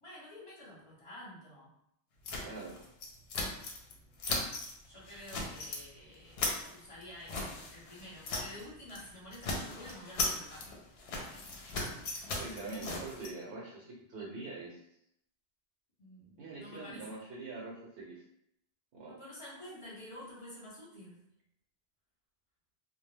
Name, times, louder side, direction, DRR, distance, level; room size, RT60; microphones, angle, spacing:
voice 1, 0.0-1.7 4.8-10.7 12.3-12.4 16.0-17.1 19.1-21.2, left 1 dB, 30° left, -7 dB, 0.9 m, -50 dB
sound 1, 2.3-3.9 4.2-4.7 5.1-5.8 6.1-8.6 8.9-9.1 9.3-13.3, left 2 dB, 65° left, 0.7 m, -38 dB
voice 2, 2.4-2.8 12.3-14.8 16.4-18.2 18.9-19.2, right 3 dB, 65° right, -3 dB, 0.8 m, -44 dB
2.1 x 2.1 x 3.2 m, 0.77 s
omnidirectional pair, 1.2 m